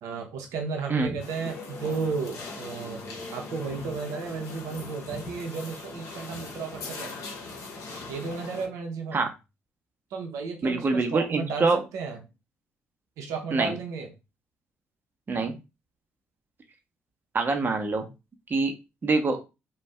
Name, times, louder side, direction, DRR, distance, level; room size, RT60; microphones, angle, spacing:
voice 1, 0.0-7.2 8.1-9.2 10.1-12.2 13.2-14.1 15.3-15.5, right 5 dB, 75° right, 3 dB, 0.6 m, -34 dB
sound 1, 1.2-8.7, left 3 dB, 65° left, 0.8 m, -40 dB
voice 2, 10.6-11.8 13.5-13.7 15.3-15.5 17.3-18.1 18.5-18.7 19.0-19.4, right 3 dB, 40° right, 4 dB, 0.7 m, -25 dB
2.5 x 2.2 x 3.2 m, 0.26 s
hypercardioid pair, 50°, 5 cm